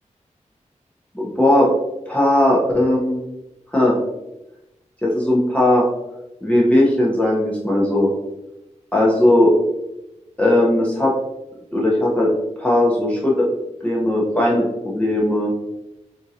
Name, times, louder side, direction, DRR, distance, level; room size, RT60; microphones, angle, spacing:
voice 1, 1.1-1.7 2.1-3.2 3.7-4.0 5.0-5.9 6.4-8.1 8.9-9.5 10.4-11.1 11.7-12.3 12.6-13.5 13.8-15.5, left 1 dB, 10° left, -4 dB, 0.8 m, -17 dB
3.7 x 2.8 x 2.7 m, 0.94 s
wide cardioid pair, 90°, 13 cm